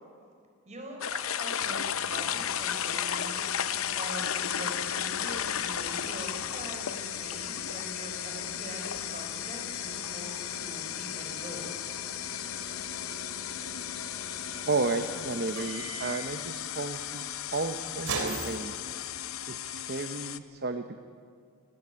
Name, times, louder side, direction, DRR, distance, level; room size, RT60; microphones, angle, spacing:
voice 1, 0.6-3.4 3.9-11.7, right 1 dB, 30° right, 2 dB, 4.2 m, -43 dB
sound 1, 1.0-20.4, left 10 dB, 70° left, 0.7 m, -34 dB
sound 2, 1.6-19.3, right 2 dB, 85° right, 3.3 m, -44 dB
voice 2, 14.7-18.7 19.5-21.0, right 3 dB, 50° right, 7 dB, 0.8 m, -33 dB
19.5 x 18.0 x 8.8 m, 2.3 s
head